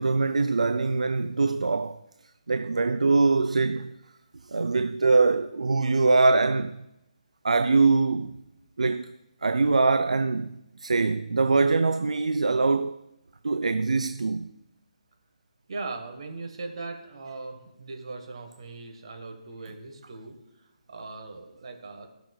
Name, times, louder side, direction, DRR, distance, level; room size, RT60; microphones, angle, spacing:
voice 1, 0.0-2.0 2.5-4.0 4.4-6.9 7.4-8.4 8.8-9.1 9.4-13.0 13.4-14.5, right 3 dB, 70° right, 0.3 m, -23 dB
voice 2, 15.7-20.4 20.9-22.1, right 3 dB, 50° right, 1.4 m, -39 dB
15.5 x 5.9 x 2.3 m
figure-of-eight pair, 140°, 4 cm